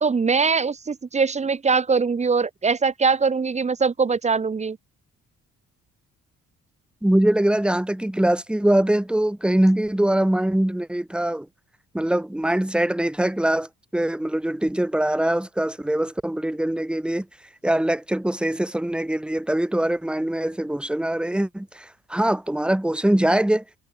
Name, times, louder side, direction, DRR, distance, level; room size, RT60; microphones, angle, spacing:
voice 1, 0.0-4.8, right 5 dB, 25° right, 0.7 m, -22 dB
voice 2, 7.0-11.5 11.9-17.3 17.6-23.6, right 1 dB, 5° right, 1.2 m, -22 dB
cardioid pair, 90°, 30 cm